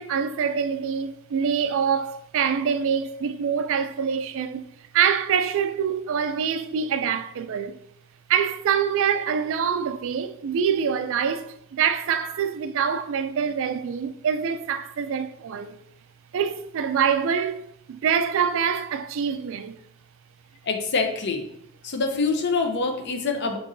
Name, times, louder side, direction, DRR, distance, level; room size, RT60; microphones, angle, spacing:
voice 1, 0.0-4.6 4.9-7.8 8.3-15.8 16.3-19.8, right 7 dB, 60° right, 0.3 m, -25 dB
voice 2, 20.6-21.4 21.8-23.6, left 4 dB, 50° left, 0.6 m, -25 dB
6.3 x 3.0 x 2.6 m
head